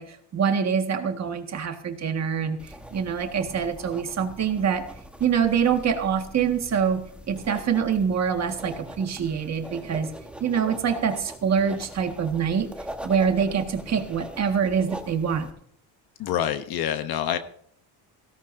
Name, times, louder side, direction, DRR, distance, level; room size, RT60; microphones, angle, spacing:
voice 1, 0.0-4.9 5.2-10.1 10.4-12.7 13.0-15.5, right 7 dB, 40° right, 6 dB, 1.7 m, -25 dB
sound 1, 2.6-15.5, right 1 dB, 5° right, 1.2 m, -42 dB
voice 2, 16.2-17.4, left 10 dB, 60° left, 9 dB, 1.0 m, -26 dB
17.5 x 17.0 x 2.6 m, 0.64 s
cardioid pair, 130°, 43 cm